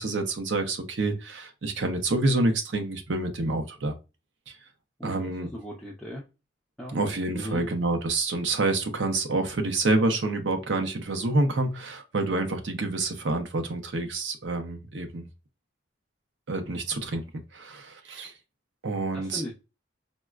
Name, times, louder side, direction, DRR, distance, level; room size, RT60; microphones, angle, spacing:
voice 1, 0.0-4.0 4.5-4.6 5.0-5.5 6.9-15.3 16.5-17.2 17.5-18.3 18.8-19.4, right 2 dB, 85° right, 0.7 m, -27 dB
voice 2, 5.0-6.2 6.8-7.0 7.3-7.6 19.1-19.5, equal, 5° left, 0.5 m, -37 dB
4.0 x 2.2 x 2.3 m
head